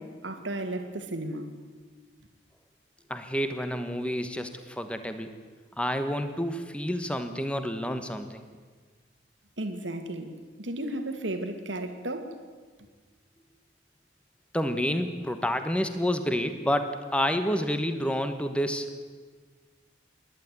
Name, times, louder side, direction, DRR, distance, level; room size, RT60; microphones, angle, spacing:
voice 1, 0.0-1.6 9.6-12.4, right 1 dB, 80° right, 2.4 m, -34 dB
voice 2, 3.1-5.3 5.8-8.4 14.5-18.9, equal, 5° left, 1.2 m, -29 dB
27.5 x 11.5 x 9.6 m
head